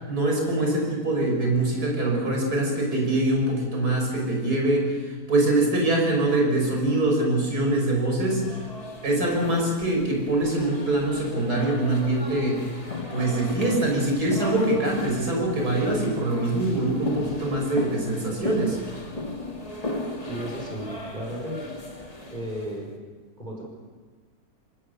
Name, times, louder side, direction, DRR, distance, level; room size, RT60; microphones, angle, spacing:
voice 1, 0.1-8.6 9.0-12.7 13.1-18.8, right 1 dB, 80° right, 0 dB, 6.4 m, -24 dB
sound 1, 8.1-22.8, left 2 dB, 25° left, 2.1 m, -36 dB
voice 2, 20.3-21.6 22.3-22.9 23.4-23.6, right 1 dB, 30° right, -1 dB, 5.5 m, -34 dB
26.5 x 19.5 x 6.9 m, 1.4 s
omnidirectional pair, 1.6 m